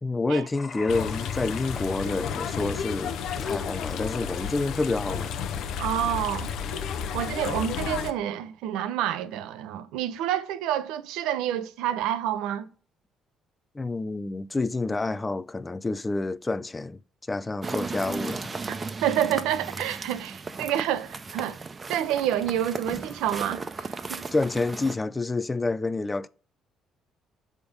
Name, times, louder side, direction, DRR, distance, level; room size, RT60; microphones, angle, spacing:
voice 1, 0.0-5.4 13.7-17.0 17.3-18.6 24.3-26.3, left 3 dB, 20° left, 0.4 m, -28 dB
sound 1, 0.5-4.8, left 4 dB, 40° left, 1.6 m, -46 dB
sound 2, 0.9-8.1, left 7 dB, 70° left, 0.6 m, -32 dB
voice 2, 5.8-6.5 7.1-12.7 19.0-21.6 21.9-24.2, right 11 dB, 75° right, 0.5 m, -28 dB
sound 3, 17.6-25.0, right 4 dB, 35° right, 0.6 m, -36 dB
6.8 x 3.6 x 5.1 m
hypercardioid pair, 60°, 0 cm